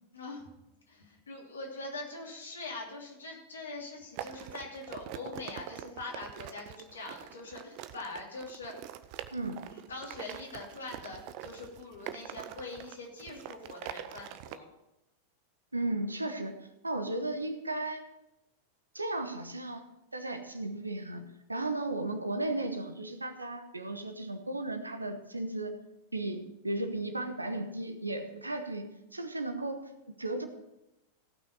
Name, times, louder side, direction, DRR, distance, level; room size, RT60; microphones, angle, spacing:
voice 1, 0.1-0.5 0.9-8.7 9.7-14.7, left 2 dB, 70° left, -1 dB, 2.9 m, -43 dB
sound 1, 4.2-14.6, right 12 dB, 45° right, 0.6 m, -44 dB
voice 2, 9.3-9.6 15.7-16.6 16.8-18.0 18.9-19.8 20.1-25.7 26.1-28.8 29.1-30.5, right 2 dB, 80° right, 8 dB, 1.1 m, -35 dB
16.5 x 6.0 x 5.5 m, 0.94 s
figure-of-eight pair, 90°, 0 cm